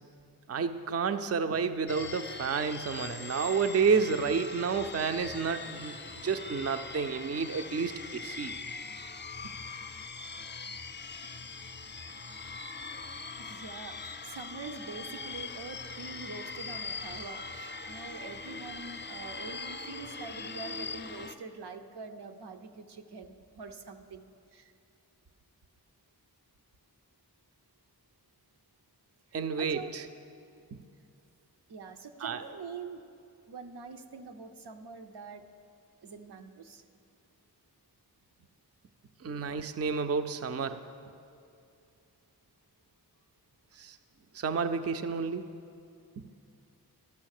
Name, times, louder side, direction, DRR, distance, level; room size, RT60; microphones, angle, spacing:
voice 1, 0.5-8.5 29.3-30.0 32.2-32.4 39.2-40.8 43.7-44.0 44.3-45.5, right 5 dB, 40° right, 9 dB, 0.4 m, -30 dB
sound 1, 1.9-21.4, left 4 dB, 30° left, 0.5 m, -41 dB
voice 2, 13.4-24.7 29.6-29.9 31.7-33.0 33.5-35.4 36.0-36.8, right 4 dB, 80° right, 6 dB, 0.7 m, -44 dB
13.0 x 5.7 x 6.5 m, 2.5 s
wide cardioid pair, 55°, 39 cm